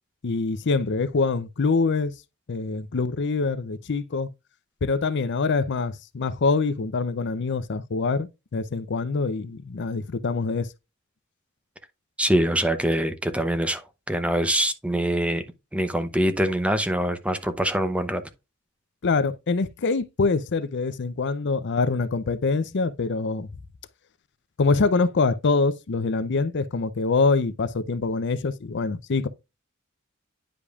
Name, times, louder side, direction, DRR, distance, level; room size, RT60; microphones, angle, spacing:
voice 1, 0.2-2.1 2.5-4.3 4.8-10.7 19.0-23.5 24.6-29.3, left 4 dB, 55° left, 0.6 m, -24 dB
voice 2, 12.2-15.4 15.7-18.2, right 1 dB, 5° right, 0.7 m, -24 dB
9.8 x 5.2 x 2.4 m
head